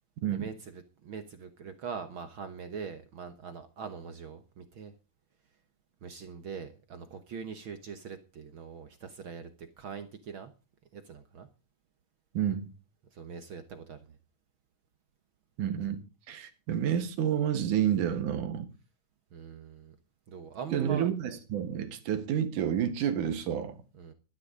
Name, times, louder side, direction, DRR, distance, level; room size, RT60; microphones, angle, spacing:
voice 1, 0.3-4.9 6.0-10.5 10.9-11.5 13.1-14.2 19.3-19.9 20.3-21.1 23.9-24.1, right 6 dB, 60° right, 1.4 m, -42 dB
voice 2, 12.3-12.7 15.6-16.0 16.3-18.7 20.7-23.8, right 9 dB, 90° right, 3.1 m, -29 dB
12.5 x 11.0 x 5.0 m
omnidirectional pair, 3.5 m